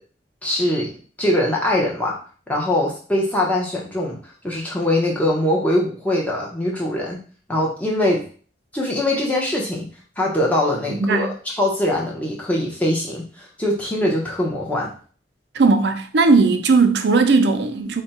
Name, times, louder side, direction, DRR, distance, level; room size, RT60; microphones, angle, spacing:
voice 1, 0.4-0.9 1.2-2.1 2.5-4.2 4.4-7.2 7.5-8.2 8.7-9.9 10.2-14.9, left 1 dB, 10° left, 0.8 m, -22 dB
voice 2, 10.9-11.3 15.5-18.0, right 3 dB, 70° right, 0.5 m, -17 dB
3.4 x 2.2 x 4.1 m
head